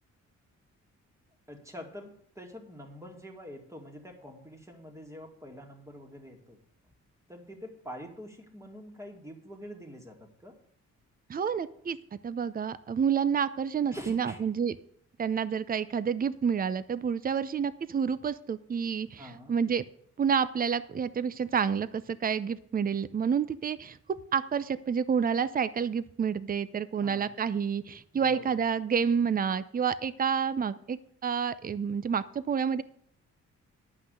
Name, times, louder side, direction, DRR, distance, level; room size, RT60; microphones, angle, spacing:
voice 1, 1.5-6.6 7.3-10.6 13.9-14.4 19.2-19.5 27.0-27.4 28.1-28.6, equal, 10° right, 2 dB, 2.2 m, -45 dB
voice 2, 11.3-12.0 12.2-14.7 15.2-19.8 20.2-32.8, right 7 dB, 30° right, 15 dB, 0.6 m, -29 dB
10.0 x 5.8 x 7.8 m, 0.66 s
cardioid pair, 105°, 30 cm